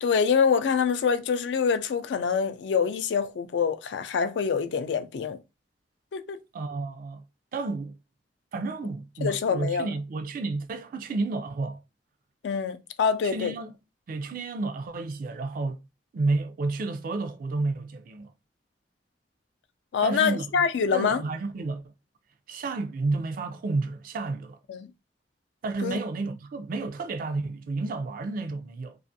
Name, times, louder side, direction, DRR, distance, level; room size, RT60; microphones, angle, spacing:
voice 1, 0.0-5.4 6.1-6.4 9.2-9.9 12.4-13.5 19.9-21.2 24.7-24.9 25.8-26.0, left 6 dB, 80° left, 0.3 m, -25 dB
voice 2, 6.5-7.2 7.5-8.0 8.5-11.8 13.3-13.7 14.1-15.8 16.1-18.3 20.0-20.5 20.9-21.9 22.5-24.6 25.6-29.0, right 3 dB, 50° right, 0.3 m, -31 dB
2.4 x 2.4 x 2.6 m
head